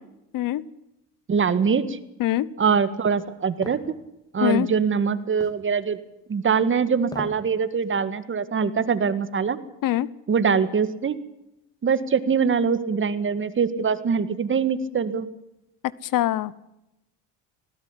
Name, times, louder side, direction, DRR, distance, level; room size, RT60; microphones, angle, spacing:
voice 1, 1.3-2.0 2.6-3.8 4.3-6.0 6.3-9.6 10.3-11.2 11.8-15.3, right 6 dB, 35° right, 13 dB, 1.9 m, -23 dB
sound 1, 3.6-3.9 5.4-5.6 7.0-7.4 7.8-7.9, left 1 dB, 10° left, 3.3 m, -37 dB
voice 2, 16.1-16.5, left 14 dB, 65° left, 21 dB, 1.0 m, -23 dB
19.0 x 17.5 x 9.8 m, 0.87 s
cardioid pair, 100°, 35 cm